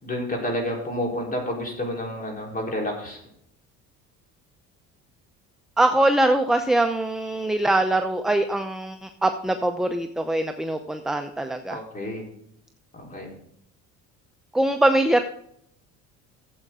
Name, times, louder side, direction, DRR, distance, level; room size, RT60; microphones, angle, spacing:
voice 1, 0.0-3.2 11.7-12.2 12.9-13.3, left 1 dB, 25° left, 0 dB, 4.1 m, -30 dB
voice 2, 5.8-11.8 14.5-15.2, right 1 dB, ahead, 6 dB, 0.7 m, -22 dB
13.5 x 8.0 x 3.7 m, 0.70 s
cardioid pair, 105°, 34 cm